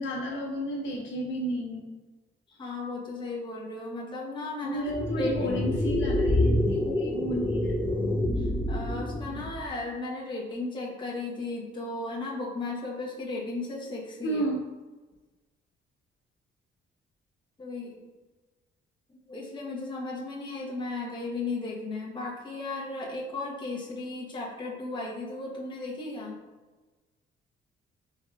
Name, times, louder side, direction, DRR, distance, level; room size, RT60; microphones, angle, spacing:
voice 1, 0.0-2.0 4.6-7.8 14.2-14.6, right 1 dB, 75° left, -3 dB, 1.0 m, -32 dB
voice 2, 2.5-4.8 5.2-5.6 8.4-14.4 17.6-18.1 19.1-26.4, left 3 dB, 25° left, -3 dB, 0.8 m, -35 dB
sound 1, 4.9-9.7, left 1 dB, 10° left, 0.3 m, -27 dB
4.6 x 3.4 x 2.3 m, 1.2 s
cardioid pair, 90°, 20 cm